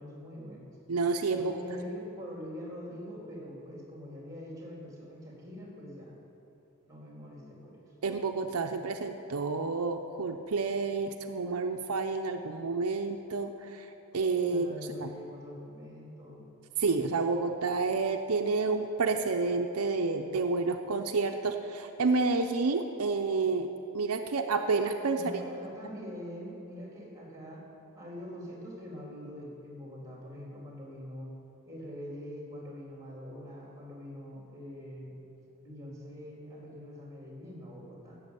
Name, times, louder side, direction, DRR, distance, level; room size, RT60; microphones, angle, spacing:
voice 1, 0.0-0.7 1.3-6.2 6.9-7.8 14.4-16.4 25.1-27.7 27.9-31.3 31.7-35.2 35.6-38.2, equal, 15° right, -3 dB, 3.6 m, -44 dB
voice 2, 0.9-1.6 8.0-14.7 15.0-15.1 16.8-25.4, right 4 dB, 75° right, 5 dB, 0.7 m, -29 dB
15.5 x 7.3 x 8.3 m, 2.9 s
head